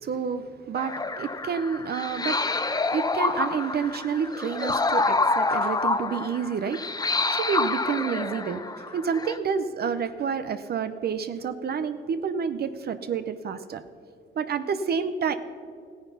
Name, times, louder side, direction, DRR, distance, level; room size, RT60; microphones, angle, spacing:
voice 1, 0.0-2.4 2.8-6.9 7.3-8.6 8.9-13.8 14.4-15.3, right 6 dB, 55° right, 10 dB, 0.7 m, -29 dB
sound 1, 0.8-9.4, left 3 dB, 20° left, 0.7 m, -27 dB
15.0 x 9.5 x 5.6 m, 2.2 s
cardioid pair, 90°, 20 cm